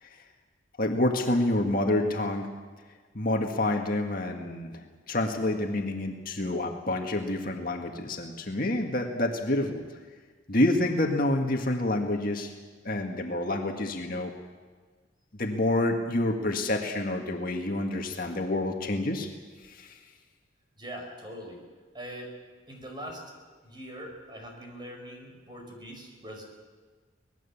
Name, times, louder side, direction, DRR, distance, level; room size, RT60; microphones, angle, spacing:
voice 1, 0.8-2.5 3.1-9.8 10.5-12.5 12.8-14.3 15.4-19.3 19.6-20.0, left 1 dB, 45° left, 3 dB, 1.9 m, -28 dB
voice 2, 20.8-21.6 21.9-22.3 22.7-23.3 23.6-26.4, equal, 25° right, 2 dB, 5.2 m, -42 dB
25.0 x 19.5 x 7.3 m, 1.4 s
head